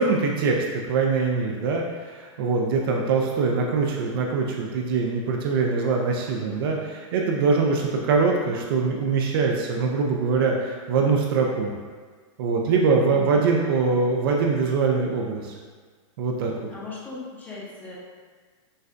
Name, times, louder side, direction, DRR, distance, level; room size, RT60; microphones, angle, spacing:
voice 1, 0.0-6.8 7.1-11.7 12.4-15.6 16.2-16.5, right 4 dB, 45° right, 1 dB, 0.4 m, -23 dB
voice 2, 6.4-6.8 13.1-13.6 16.7-18.0, left 4 dB, 10° left, -6 dB, 0.6 m, -38 dB
6.3 x 2.2 x 2.5 m, 1.5 s
supercardioid pair, 165°, 17 cm